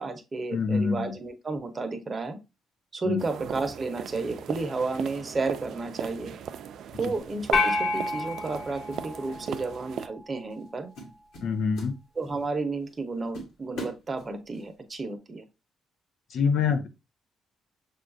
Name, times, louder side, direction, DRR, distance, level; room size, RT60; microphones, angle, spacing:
voice 1, 0.0-2.4 2.9-6.4 7.0-10.9 12.2-15.4, right 3 dB, 30° right, 6 dB, 0.8 m, -32 dB
voice 2, 0.5-1.2 3.0-3.2 11.4-11.9 16.3-16.9, left 5 dB, 65° left, 8 dB, 0.6 m, -25 dB
sound 1, 3.2-10.1, right 8 dB, 70° right, 0.3 m, -38 dB
sound 2, 7.2-7.4 8.5-9.5 9.7-10.0 10.5-10.7 10.9-12.5 12.9-13.0 13.3-14.7, left 1 dB, 85° left, 1.5 m, -42 dB
sound 3, 7.5-10.0, left 3 dB, 50° left, 0.9 m, -29 dB
6.3 x 2.4 x 2.5 m, 0.26 s
cardioid pair, 90°, 0 cm